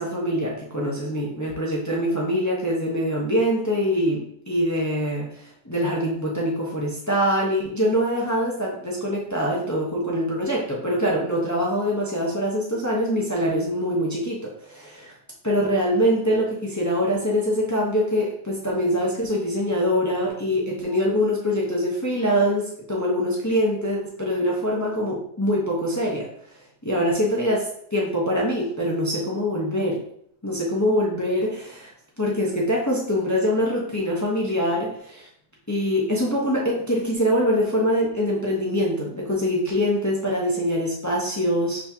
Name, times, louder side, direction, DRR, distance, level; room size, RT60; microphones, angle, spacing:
voice 1, 0.0-15.1 15.4-26.3 26.8-30.0 30.4-31.9 32.2-35.3 35.7-41.8, equal, 20° left, -3 dB, 0.5 m, -24 dB
5.3 x 3.5 x 2.8 m, 0.66 s
omnidirectional pair, 1.8 m